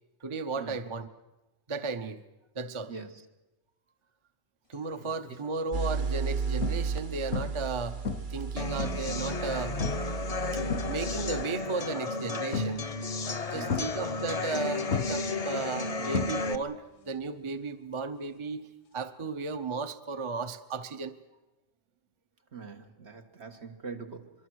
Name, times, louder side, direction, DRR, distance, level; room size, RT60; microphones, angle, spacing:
voice 1, 0.2-1.1 1.7-2.2 2.5-2.9 4.7-8.0 8.3-9.8 10.5-10.6 10.9-12.8 13.5-21.1, right 4 dB, 30° right, 9 dB, 0.8 m, -35 dB
sound 1, 5.0-5.3 5.9-6.0 6.6-7.0 7.3-7.7 8.1-9.2 9.8-10.2 10.5-11.3 12.5-13.0 13.7-14.6 14.9-16.8 17.1-17.5 19.5-19.6, left 5 dB, 70° left, 1.2 m, -34 dB
sound 2, 5.7-11.4, right 5 dB, 45° right, 1.1 m, -34 dB
sound 3, 8.6-16.6, left 3 dB, 35° left, 0.8 m, -33 dB
voice 2, 22.5-24.3, right 5 dB, 70° right, 5 dB, 1.8 m, -42 dB
25.0 x 23.0 x 6.3 m, 1.0 s
omnidirectional pair, 1.2 m